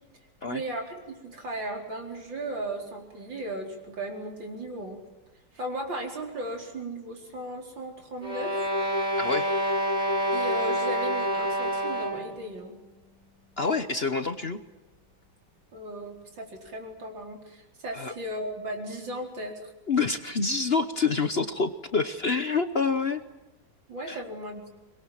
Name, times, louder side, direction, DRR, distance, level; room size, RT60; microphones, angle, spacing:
voice 1, 0.5-5.0 5.5-8.6 10.3-12.8 15.7-19.7 23.9-24.7, right 1 dB, 85° right, 2 dB, 5.0 m, -36 dB
sound 1, 8.2-12.4, equal, 20° right, 3.5 m, -27 dB
voice 2, 13.6-14.6 17.9-18.1 19.9-23.2 24.1-24.2, left 4 dB, 40° left, 10 dB, 1.0 m, -27 dB
24.5 x 22.0 x 9.1 m, 1.1 s
omnidirectional pair, 2.0 m